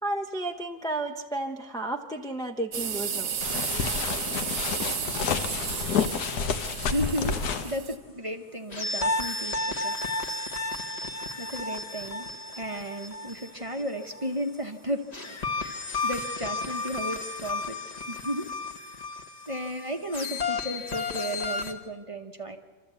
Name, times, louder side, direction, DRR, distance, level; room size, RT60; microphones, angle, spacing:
voice 1, 0.0-3.5, right 2 dB, 5° left, 2 dB, 0.6 m, -32 dB
sound 1, 2.7-8.0, right 7 dB, 55° right, 1.0 m, -33 dB
sound 2, 3.4-7.7, left 6 dB, 85° left, 1.5 m, -29 dB
voice 2, 6.6-18.5 19.5-22.6, equal, 25° right, 5 dB, 1.0 m, -35 dB
sound 3, 8.7-14.3 15.1-21.7, left 3 dB, 30° left, 1.2 m, -33 dB
27.0 x 13.0 x 8.3 m, 1.4 s
omnidirectional pair, 1.6 m